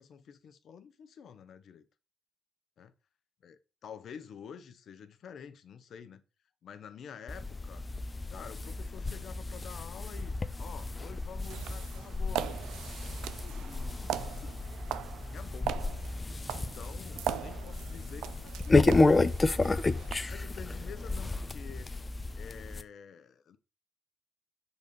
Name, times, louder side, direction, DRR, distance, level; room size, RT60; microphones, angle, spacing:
voice 1, 0.0-1.8 2.8-2.9 3.4-6.2 6.6-7.8 8.3-14.6 15.3-15.9 16.5-19.0 19.6-19.8 20.2-21.9 22.3-23.6, left 7 dB, 65° left, 0.8 m, -49 dB
sound 1, 7.3-22.8, left 3 dB, 25° left, 0.5 m, -31 dB
sound 2, 10.1-15.8, right 3 dB, 45° right, 1.9 m, -56 dB
sound 3, 11.4-20.1, right 11 dB, 90° right, 0.4 m, -40 dB
6.9 x 4.1 x 5.2 m
cardioid pair, 90°, 0 cm